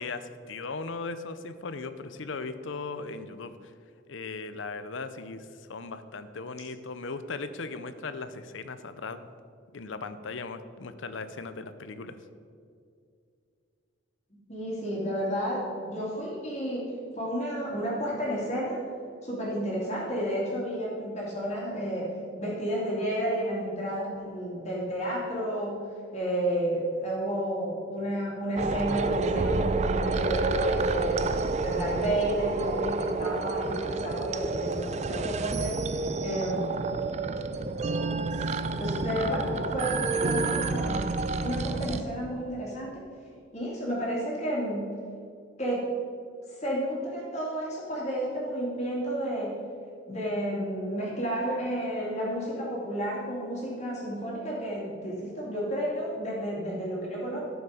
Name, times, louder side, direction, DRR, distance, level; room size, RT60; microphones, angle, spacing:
voice 1, 0.0-3.5 4.1-9.3 9.7-12.2, left 4 dB, 75° left, 11 dB, 0.7 m, -38 dB
voice 2, 14.3-16.9 17.1-18.8 19.2-22.1 22.4-25.8 26.1-31.2 31.6-35.8 36.2-36.7 38.8-41.1 41.4-43.0 43.5-44.9 45.6-45.8 46.5-49.6 50.1-57.4, equal, 35° left, -5 dB, 2.6 m, -31 dB
sound 1, 28.6-42.0, right 3 dB, 35° right, 0.4 m, -29 dB
12.5 x 7.1 x 5.0 m, 2.3 s
head